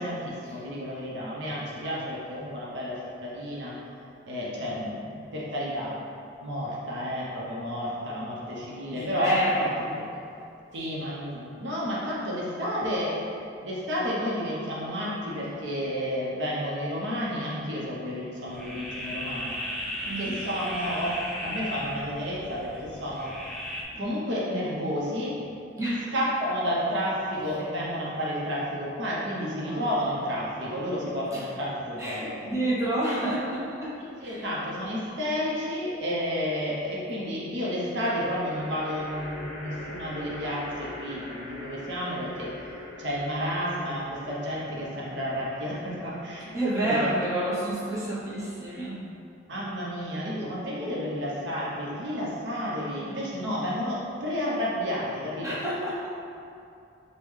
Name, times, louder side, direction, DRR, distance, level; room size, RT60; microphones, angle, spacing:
voice 1, 0.0-3.8 4.3-5.9 6.4-9.3 9.6-9.7 10.0-10.1 10.7-13.2 13.6-19.6 20.1-23.4 23.9-25.4 26.1-32.4 33.2-33.3 34.0-42.7 43.0-47.0 49.5-55.6, equal, 70° right, -6 dB, 0.7 m, -31 dB
voice 2, 8.9-9.8 20.0-20.4 25.8-26.1 29.6-29.8 31.3-31.4 32.0-33.9 34.2-34.4 46.5-49.0 55.4-56.1, right 1 dB, 15° right, -8 dB, 0.7 m, -28 dB
sound 1, 18.5-23.8, equal, ahead, 0.3 m, -36 dB
sound 2, 34.7-35.4 37.9-49.2, left 1 dB, 40° left, 0.7 m, -44 dB
5.2 x 2.2 x 3.2 m, 2.6 s
head